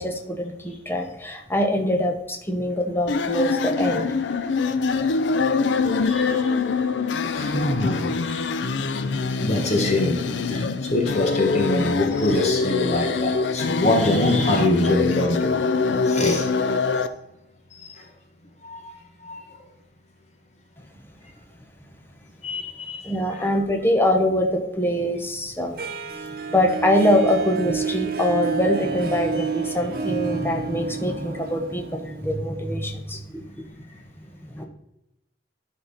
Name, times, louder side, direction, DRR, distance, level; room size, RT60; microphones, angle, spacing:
voice 1, 0.0-4.1 23.0-25.8 26.5-33.2 33.6-33.7 34.5-34.7, left 1 dB, 15° left, 3 dB, 0.9 m, -23 dB
sound 1, 3.1-17.1, left 4 dB, 80° left, 0.5 m, -24 dB
voice 2, 6.0-6.5 7.3-8.4 9.4-15.6 16.1-16.5 17.0-17.1 17.8-18.0 18.6-18.9 19.2-19.5 22.4-23.0 23.3-23.5, left 2 dB, 40° left, 2 dB, 1.3 m, -24 dB
Harp, 25.8-32.7, right 5 dB, 55° right, 0.8 m, -29 dB
11.5 x 4.3 x 4.1 m, 0.89 s
head